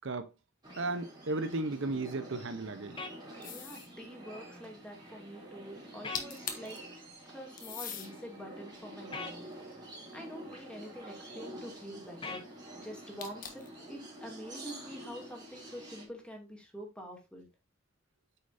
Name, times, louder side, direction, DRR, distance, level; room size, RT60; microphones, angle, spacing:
sound 1, 0.6-16.1, right 1 dB, 20° right, 3.2 m, -48 dB
voice 1, 0.8-3.0, right 2 dB, 65° right, 0.9 m, -34 dB
sound 2, 3.0-3.2 6.0-6.3 9.1-9.4 12.2-12.5, left 4 dB, 25° left, 1.2 m, -39 dB
sound 3, 3.4-3.9 5.9-6.0 6.1-6.8 7.6-8.1 8.8-10.2 13.2-13.8, left 7 dB, 40° left, 1.5 m, -41 dB
voice 2, 3.5-6.8 7.3-9.8 10.1-12.4 12.8-17.5, equal, 5° left, 2.6 m, -46 dB
9.1 x 6.5 x 2.7 m
head